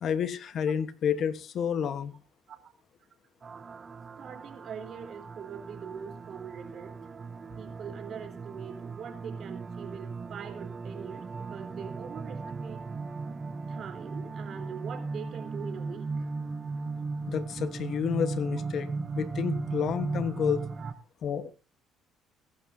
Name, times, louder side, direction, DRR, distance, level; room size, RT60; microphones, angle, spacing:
voice 1, 0.0-2.1 17.3-18.9 19.1-20.6 21.2-21.5, left 8 dB, 55° left, 13 dB, 1.3 m, -30 dB
sound 1, 3.4-20.9, right 4 dB, 30° right, 0.8 m, -37 dB
voice 2, 4.2-6.9 7.6-12.8 13.7-16.3 20.8-20.9, right 7 dB, 55° right, 6 dB, 3.8 m, -43 dB
22.5 x 11.5 x 2.8 m, 0.31 s
cardioid pair, 105°, 0 cm